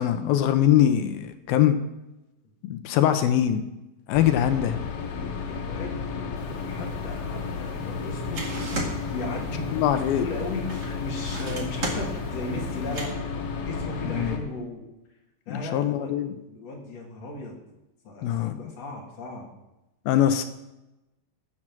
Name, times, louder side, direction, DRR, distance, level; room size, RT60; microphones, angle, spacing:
voice 1, 0.0-1.8 2.6-3.7 4.1-4.8 9.7-10.2 14.1-14.4 15.5-16.3 18.2-18.6 20.1-20.4, left 11 dB, 80° left, 9 dB, 2.5 m, -22 dB
sound 1, 4.1-14.4, left 5 dB, 65° left, 2.9 m, -33 dB
voice 2, 5.0-8.5 9.1-13.1 13.6-14.8 15.5-16.2 16.5-17.6 18.0-19.5, left 2 dB, 45° left, -1 dB, 3.2 m, -36 dB
sound 2, 6.3-13.1, right 2 dB, 35° right, 2.0 m, -37 dB
15.5 x 7.5 x 6.1 m, 0.96 s
omnidirectional pair, 4.5 m